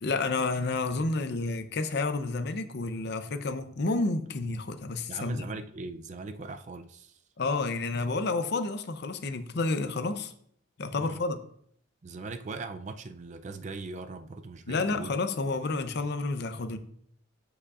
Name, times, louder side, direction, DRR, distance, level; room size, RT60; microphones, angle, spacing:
voice 1, 0.0-5.4 7.4-10.3 10.8-11.4 14.7-16.8, left 3 dB, 60° left, 0.6 m, -30 dB
voice 2, 5.1-7.2 10.9-11.2 12.0-15.1, right 3 dB, 40° right, 0.4 m, -40 dB
13.0 x 4.9 x 2.5 m
head